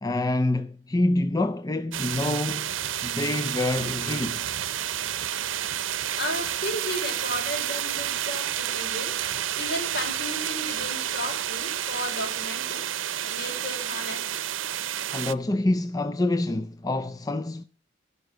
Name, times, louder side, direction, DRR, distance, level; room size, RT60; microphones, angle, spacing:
voice 1, 0.0-2.7 3.0-4.6 15.1-17.6, left 2 dB, 20° left, 0.5 m, -26 dB
sound 1, 1.9-15.3, right 11 dB, 85° right, 0.7 m, -30 dB
voice 2, 6.1-9.2 9.5-12.8 13.3-14.3, left 1 dB, 60° left, 4.3 m, -34 dB
15.5 x 5.7 x 7.7 m
head